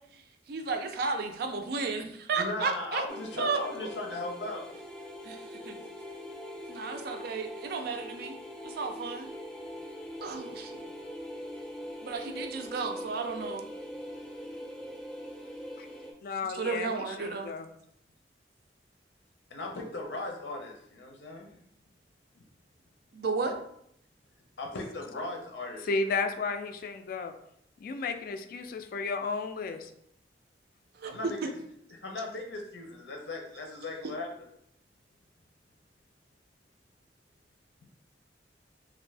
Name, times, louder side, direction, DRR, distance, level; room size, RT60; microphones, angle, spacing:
voice 1, 0.5-3.0 3.4-3.9 5.2-5.4 5.7-5.8 6.7-8.4 8.6-9.3 10.2-10.9 12.0-13.7 16.5-17.5 23.1-23.6 31.0-31.5, right 4 dB, 60° right, 5 dB, 0.4 m, -33 dB
voice 2, 2.3-4.7 19.5-21.5 24.6-25.9 31.0-31.4 32.0-34.4, left 2 dB, 90° left, 1 dB, 0.7 m, -37 dB
sound 1, 3.1-16.1, left 1 dB, 5° left, 0.6 m, -42 dB
voice 3, 16.2-17.7 25.9-27.3 27.8-29.9, left 4 dB, 55° left, 8 dB, 0.3 m, -33 dB
2.5 x 2.5 x 3.2 m, 0.72 s
head